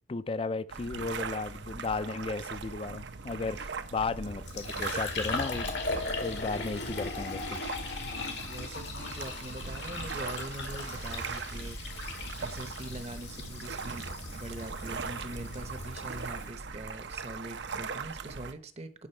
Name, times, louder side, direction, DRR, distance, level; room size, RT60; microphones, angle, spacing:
voice 1, 0.1-7.6, left 3 dB, 30° left, 0.4 m, -35 dB
sound 1, 0.7-18.5, right 4 dB, 80° right, 0.7 m, -40 dB
Fill (with liquid), 4.0-16.5, left 3 dB, 75° left, 2.0 m, -38 dB
voice 2, 8.0-11.8 12.4-19.1, right 1 dB, 35° right, 0.8 m, -43 dB
9.8 x 6.0 x 4.4 m
head